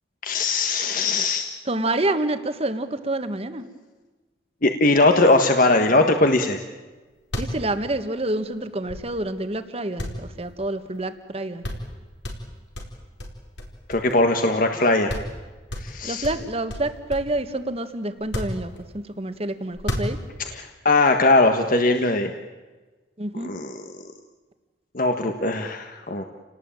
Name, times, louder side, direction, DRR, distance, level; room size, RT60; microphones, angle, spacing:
voice 1, 0.2-1.5 4.6-6.6 13.9-15.1 15.8-16.3 20.5-22.3 23.4-23.8 24.9-26.2, left 2 dB, 50° left, 5 dB, 1.5 m, -20 dB
voice 2, 1.7-3.7 7.4-11.6 16.0-20.2 23.2-23.5, right 2 dB, 35° right, 9 dB, 1.6 m, -28 dB
sound 1, 6.9-7.0 7.2-9.4 10.0-11.0 11.3-11.4 11.6-11.9 12.2-14.4 14.7-14.8 15.1-15.4 15.7-17.4 18.2-19.1 19.7-20.5, left 1 dB, 75° left, 4.5 m, -32 dB
29.0 x 19.0 x 9.0 m, 1.3 s
head